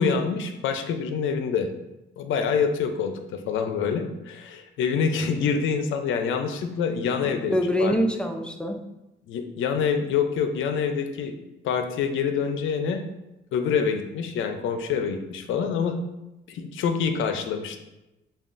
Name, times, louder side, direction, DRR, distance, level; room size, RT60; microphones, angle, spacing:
voice 1, 0.0-1.7 2.2-7.5 7.8-7.9 9.3-11.3 11.6-13.1 13.5-16.0 16.5-17.8, left 6 dB, 80° left, 7 dB, 0.5 m, -26 dB
voice 2, 7.0-8.8, equal, 5° left, 4 dB, 0.5 m, -25 dB
6.9 x 2.3 x 2.5 m, 0.95 s
cardioid pair, 90°, 20 cm